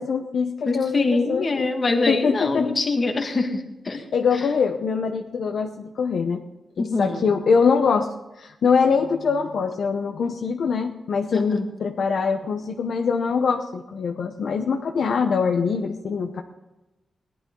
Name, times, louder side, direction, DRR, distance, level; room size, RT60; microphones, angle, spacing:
voice 1, 0.0-1.7 2.1-2.7 4.1-6.4 6.8-8.1 8.4-16.4, left 5 dB, 60° left, 4 dB, 0.8 m, -23 dB
voice 2, 0.7-4.0 4.3-4.5 6.8-7.3 11.3-11.7, left 3 dB, 30° left, 4 dB, 1.8 m, -24 dB
18.0 x 11.0 x 3.8 m, 1.0 s
wide cardioid pair, 160°, 0 cm